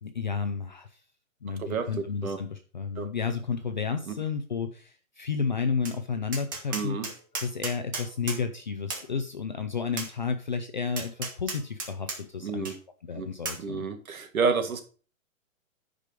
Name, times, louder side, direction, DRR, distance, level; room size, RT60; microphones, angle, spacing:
voice 1, 0.0-1.0 1.4-7.0 7.3-12.7 13.0-13.8, left 5 dB, 35° left, 7 dB, 0.5 m, -32 dB
Tap, 5.8-6.0 6.3-8.4 8.9-9.1 10.0-10.1 11.0-12.2 12.6-12.7 13.4-13.6, right 4 dB, 15° right, 0.8 m, -34 dB
voice 2, 6.7-7.1 12.4-12.7 13.1-13.3 13.6-14.8, right 5 dB, 80° right, 6 dB, 2.1 m, -29 dB
10.0 x 5.0 x 5.1 m, 0.39 s
hypercardioid pair, 180°, 42 cm